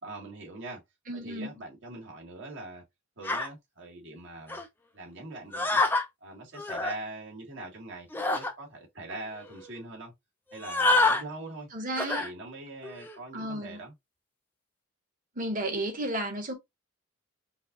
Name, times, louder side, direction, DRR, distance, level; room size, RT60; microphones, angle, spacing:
voice 1, 0.0-0.8 1.2-2.8 3.2-4.6 4.9-5.8 6.2-8.1 8.3-10.1 10.5-11.7 12.2-13.9, right 2 dB, 65° right, 2.0 m, -42 dB
voice 2, 1.1-1.5 11.7-12.3 13.3-13.8 15.3-16.5, right 1 dB, 40° right, 1.5 m, -33 dB
sound 1, 3.2-3.5 4.5-4.7 5.5-6.1 6.5-7.0 8.1-8.5 9.1-9.2 9.4-9.7 10.5-11.2 12.0-12.3 12.8-13.2, left 2 dB, 10° left, 0.6 m, -27 dB
5.6 x 2.7 x 2.5 m
head